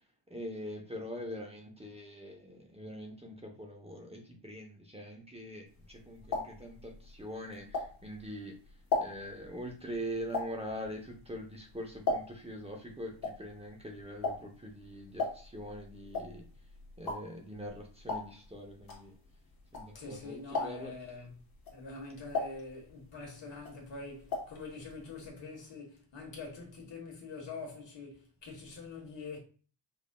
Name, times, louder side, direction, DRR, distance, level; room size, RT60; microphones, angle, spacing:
voice 1, 0.3-8.5 9.0-16.4 17.0-19.1 19.7-20.9, equal, 15° right, 0.7 m, -43 dB
sound 1, 5.8-8.3 8.7-12.6 12.9-20.2 20.5-21.0 21.5-23.2 23.5-24.6 24.9-25.0 25.2-25.3, left 3 dB, 50° left, 1.2 m, -37 dB
voice 2, 19.9-21.4 21.7-29.4, left 3 dB, 70° left, 1.4 m, -45 dB
5.2 x 2.6 x 2.2 m
wide cardioid pair, 130°, 44 cm